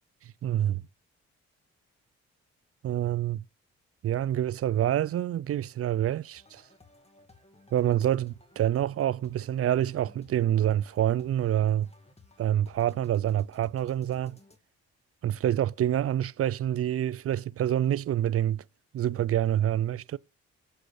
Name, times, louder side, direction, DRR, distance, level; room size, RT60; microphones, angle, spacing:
voice 1, 0.4-0.8 2.8-3.4 4.0-6.6 7.7-11.9 12.4-14.4 15.2-18.6 18.9-20.2, right 11 dB, 50° right, 0.5 m, -27 dB
sound 1, 6.3-14.6, left 3 dB, 20° left, 2.0 m, -58 dB
17.0 x 6.8 x 2.6 m
supercardioid pair, 45°, 31 cm